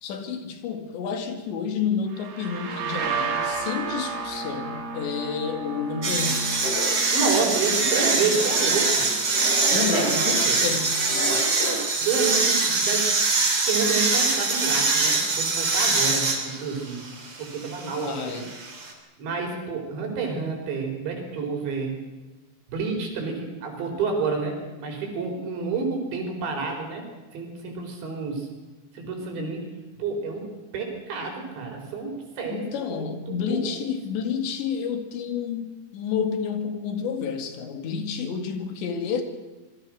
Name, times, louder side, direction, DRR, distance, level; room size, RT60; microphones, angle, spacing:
voice 1, 0.0-6.6 9.7-11.1 17.9-18.5 29.4-29.5 32.5-39.2, left 6 dB, 80° left, 4.4 m, -30 dB
sound 1, 2.1-9.7, right 5 dB, 60° right, 4.1 m, -33 dB
sound 2, 6.0-18.9, right 3 dB, 30° right, 3.9 m, -24 dB
sound 3, 6.6-13.1, equal, 30° left, 8.2 m, -33 dB
voice 2, 7.1-9.1 9.7-10.6 11.3-11.4 12.0-13.1 13.7-17.1 17.4-18.4 19.2-22.0 22.7-27.1 27.3-28.5 28.9-29.7 30.0-30.5 30.7-33.9, right 4 dB, 80° right, 7.1 m, -29 dB
26.5 x 22.0 x 6.5 m
omnidirectional pair, 5.1 m